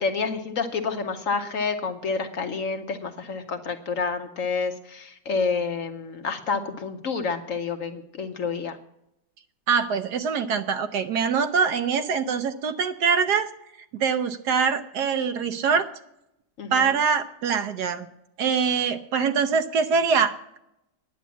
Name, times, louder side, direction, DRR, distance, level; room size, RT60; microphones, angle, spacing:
voice 1, 0.0-8.8 16.6-17.0, left 4 dB, 60° left, 6 dB, 0.9 m, -29 dB
voice 2, 9.7-13.5 14.0-15.9 16.7-18.1 18.4-20.6, right 6 dB, 70° right, 9 dB, 1.2 m, -24 dB
10.0 x 8.1 x 8.2 m, 0.82 s
omnidirectional pair, 2.0 m